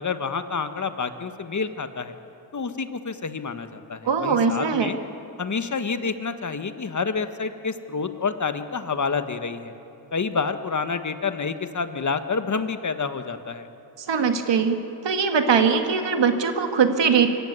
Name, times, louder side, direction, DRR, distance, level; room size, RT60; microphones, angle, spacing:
voice 1, 0.0-2.1 2.5-5.0 5.4-9.7 10.1-13.7, left 5 dB, 40° left, 9 dB, 1.4 m, -28 dB
voice 2, 4.1-4.9 14.1-17.3, right 6 dB, 65° right, 6 dB, 2.0 m, -21 dB
24.0 x 14.0 x 9.5 m, 2.8 s
cardioid pair, 75°, 46 cm